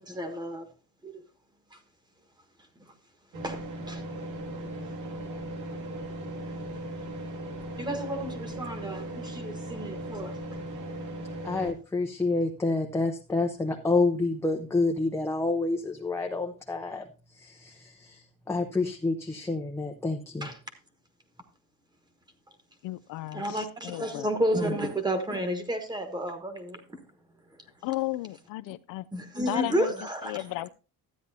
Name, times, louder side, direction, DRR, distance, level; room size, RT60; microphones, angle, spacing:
voice 1, 0.1-0.7 1.0-1.2 1.7-1.8 3.4-4.0 4.6-4.7 7.8-10.4 20.4-20.5 23.3-27.0 29.1-30.4, right 1 dB, 10° right, 1.3 m, -31 dB
sound 1, 3.3-11.7, right 1 dB, 60° right, 2.1 m, -38 dB
voice 2, 11.4-17.1 17.4-20.5, left 3 dB, 10° left, 0.6 m, -28 dB
voice 3, 22.8-24.3 27.8-29.1 29.5-29.9 30.2-30.7, left 17 dB, 70° left, 0.5 m, -34 dB
13.0 x 9.4 x 2.7 m
cardioid pair, 160°, 34 cm